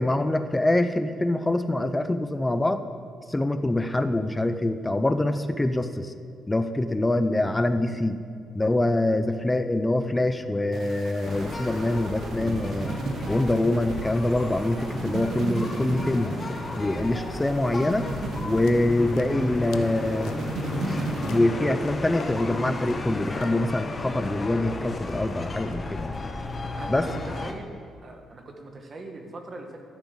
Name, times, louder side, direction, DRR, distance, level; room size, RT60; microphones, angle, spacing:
voice 1, 0.0-2.8 3.3-6.1 6.5-8.2 8.5-13.0 13.3-16.3 16.8-18.1 18.4-20.4 21.3-26.2 26.9-27.1, left 1 dB, 15° left, 9 dB, 0.5 m, -25 dB
sound 1, 10.7-21.4, right 3 dB, 65° right, 0.9 m, -35 dB
sound 2, 11.2-27.5, left 2 dB, 30° left, 0.9 m, -34 dB
sound 3, 18.1-23.8, left 7 dB, 90° left, 0.5 m, -45 dB
voice 2, 26.8-27.7 28.0-29.8, right 2 dB, 40° right, 4 dB, 1.4 m, -40 dB
10.5 x 5.3 x 7.7 m, 2.3 s
cardioid pair, 90°, 0 cm